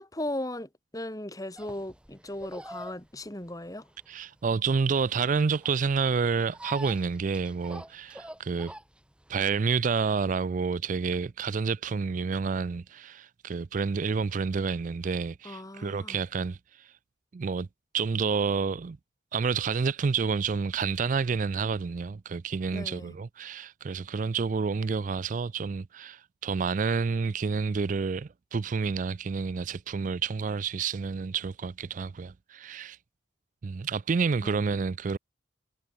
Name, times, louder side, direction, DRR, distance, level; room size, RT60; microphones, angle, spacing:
voice 1, 0.0-3.8 15.4-16.2 22.7-23.1 34.4-34.6, left 1 dB, 20° left, 2.3 m, -37 dB
sound 1, 1.6-9.7, right 1 dB, 5° right, 2.4 m, -46 dB
voice 2, 4.1-8.7 9.3-16.9 17.3-17.7 17.9-19.0 19.3-33.0 33.6-35.2, right 5 dB, 40° right, 0.4 m, -29 dB
head